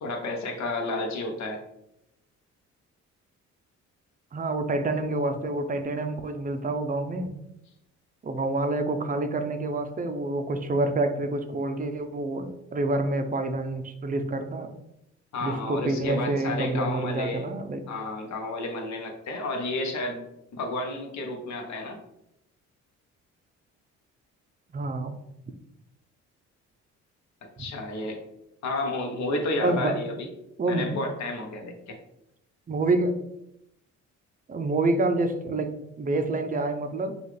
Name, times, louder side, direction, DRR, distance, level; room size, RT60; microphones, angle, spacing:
voice 1, 0.0-1.6 15.3-17.5 17.9-20.2 20.5-22.0 27.6-28.2 28.6-30.3 30.7-32.0, left 2 dB, 65° left, 3 dB, 1.0 m, -31 dB
voice 2, 4.3-7.3 8.2-14.7 15.4-17.9 24.7-25.1 27.6-27.7 29.6-30.0 30.6-31.0 32.7-33.1 34.5-37.2, right 2 dB, 30° right, 8 dB, 0.5 m, -27 dB
5.4 x 2.4 x 3.2 m, 0.82 s
cardioid pair, 90°, 30 cm